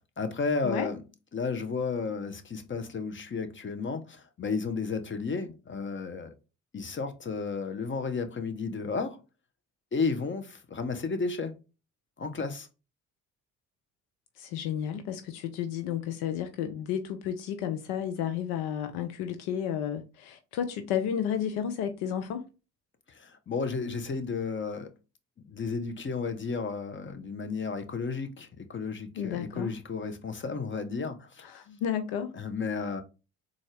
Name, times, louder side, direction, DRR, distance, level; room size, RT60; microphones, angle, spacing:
voice 1, 0.2-1.0 1.3-6.3 6.7-9.2 9.9-11.5 12.2-12.7 23.1-24.9 25.5-31.6 32.3-33.0, left 4 dB, 30° left, 0.8 m, -33 dB
voice 2, 14.4-22.4 29.2-29.7 31.4-32.3, left 9 dB, 75° left, 0.5 m, -32 dB
3.9 x 2.5 x 3.1 m
hypercardioid pair, 50°, 38 cm